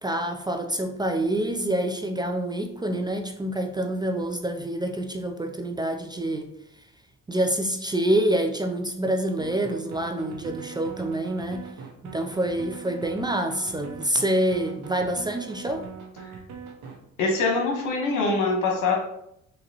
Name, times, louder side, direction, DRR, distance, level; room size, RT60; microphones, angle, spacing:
voice 1, 0.0-6.5 7.3-11.7 12.0-15.9, right 1 dB, 15° right, 4 dB, 0.3 m, -27 dB
sound 1, 9.4-17.0, right 6 dB, 85° right, 0.8 m, -41 dB
voice 2, 17.2-18.9, left 3 dB, 85° left, -1 dB, 1.2 m, -23 dB
3.9 x 2.8 x 2.9 m, 0.76 s
cardioid pair, 90°, 30 cm